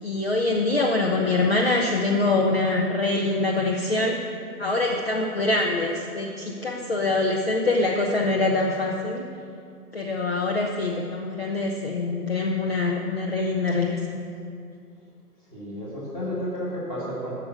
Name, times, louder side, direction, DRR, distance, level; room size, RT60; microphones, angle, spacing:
voice 1, 0.0-4.2 4.6-9.3 9.9-14.2, left 2 dB, 40° left, 0 dB, 0.9 m, -24 dB
voice 2, 15.5-17.3, equal, 10° left, -9 dB, 2.3 m, -32 dB
10.5 x 6.7 x 7.9 m, 2.4 s
figure-of-eight pair, 145°, 47 cm